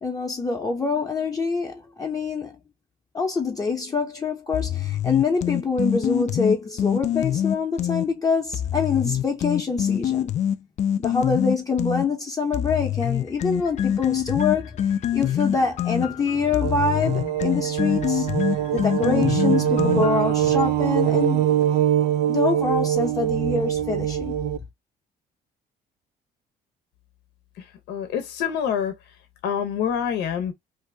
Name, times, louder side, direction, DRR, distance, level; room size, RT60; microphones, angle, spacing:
voice 1, 0.0-2.6 3.1-10.3 11.0-21.5 22.3-24.3, left 4 dB, 20° left, 0.7 m, -25 dB
sound 1, 4.5-8.1 8.5-12.1 12.5-20.3, left 10 dB, 45° left, 0.4 m, -25 dB
sound 2, 16.6-24.6, right 11 dB, 75° right, 0.4 m, -23 dB
voice 2, 27.6-28.9 29.4-30.5, left 8 dB, 80° left, 0.7 m, -26 dB
2.6 x 2.5 x 3.2 m
cardioid pair, 110°, 17 cm